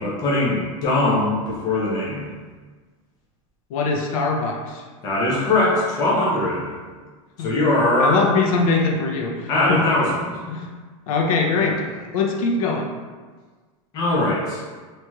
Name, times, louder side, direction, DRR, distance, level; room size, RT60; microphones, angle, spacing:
voice 1, 0.0-2.3 5.0-6.7 7.4-8.2 9.5-10.4 11.6-11.8 13.9-14.6, left 2 dB, 20° left, -5 dB, 0.6 m, -21 dB
voice 2, 3.7-4.8 7.4-7.5 8.0-9.8 10.5-10.7 11.1-11.8 12.1-12.9, left 4 dB, 85° left, 0 dB, 0.5 m, -22 dB
3.1 x 2.8 x 2.3 m, 1.4 s
supercardioid pair, 170°, 18 cm